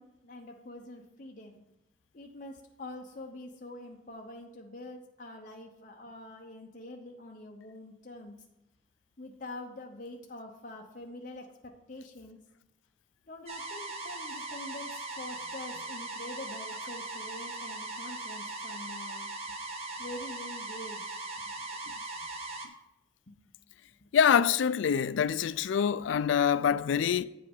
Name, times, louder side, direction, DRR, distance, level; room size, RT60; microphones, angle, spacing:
voice 1, 0.0-1.6 2.1-8.4 9.2-11.5 11.9-12.4 13.3-19.3 20.0-21.3 23.3-23.4 24.0-24.1, left 2 dB, 45° left, 0.9 m, -45 dB
sound 1, 13.5-22.7, right 2 dB, 35° right, 0.9 m, -39 dB
voice 2, 24.1-27.2, left 7 dB, 75° left, 0.3 m, -25 dB
8.8 x 5.5 x 5.4 m
head